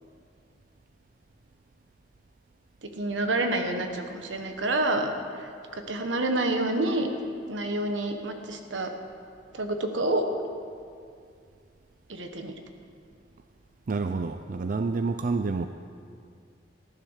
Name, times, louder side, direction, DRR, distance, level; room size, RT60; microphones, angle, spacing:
voice 1, 2.8-5.1 5.4-7.1 7.5-8.9 9.5-10.3 12.1-12.5, right 2 dB, 75° right, 5 dB, 1.3 m, -28 dB
voice 2, 13.9-15.7, right 4 dB, 45° right, 8 dB, 0.4 m, -28 dB
14.5 x 10.0 x 6.5 m, 2.3 s
head